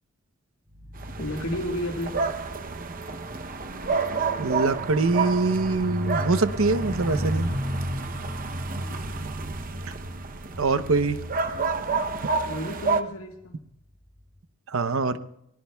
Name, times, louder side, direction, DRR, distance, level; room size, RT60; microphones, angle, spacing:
sound 1, 0.7-12.3 13.1-13.4, left 1 dB, 15° right, 4.2 m, -35 dB
sound 2, 0.9-13.0, right 4 dB, 40° right, 0.7 m, -30 dB
voice 1, 1.2-2.3 8.7-9.3 11.5-12.0 12.4-13.6, left 1 dB, 85° left, 2 dB, 1.8 m, -34 dB
voice 2, 4.4-7.5 10.6-11.2 14.7-15.2, right 3 dB, 75° right, 11 dB, 0.8 m, -24 dB
24.5 x 19.0 x 2.3 m, 0.76 s
head